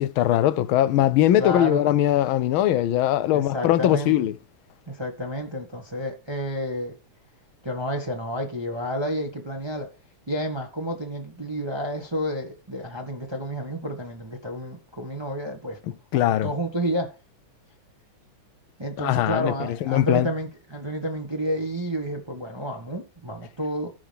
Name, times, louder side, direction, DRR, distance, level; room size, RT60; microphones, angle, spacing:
voice 1, 0.0-4.3 16.1-16.5 19.0-20.3, left 12 dB, 75° left, 1.4 m, -21 dB
voice 2, 1.4-1.9 3.3-4.3 4.9-6.9 7.6-9.9 10.3-17.1 18.8-23.9, equal, 15° right, 1.3 m, -30 dB
15.0 x 6.1 x 3.5 m
omnidirectional pair, 2.4 m